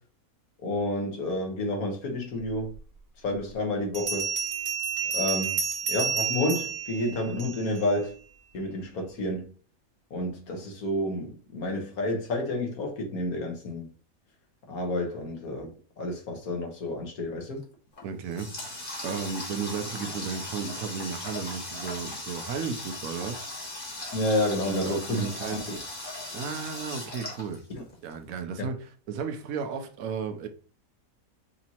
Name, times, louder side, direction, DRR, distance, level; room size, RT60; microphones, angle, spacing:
voice 1, 0.6-2.7 3.2-4.3 5.1-5.6 5.9-8.1 8.5-9.5 10.1-13.9 14.7-15.7 16.0-17.6 24.1-25.8 27.7-27.8, left 1 dB, 80° left, 1.7 m, -30 dB
Bell, 2.7-2.8 3.9-7.8, right 7 dB, 50° right, 1.2 m, -30 dB
Water tap faucet, 17.9-28.1, left 2 dB, 40° left, 1.4 m, -38 dB
voice 2, 18.0-23.4 24.6-25.8 26.3-27.6 28.0-30.5, right 6 dB, 75° right, 1.1 m, -34 dB
5.1 x 2.8 x 2.8 m
omnidirectional pair, 1.5 m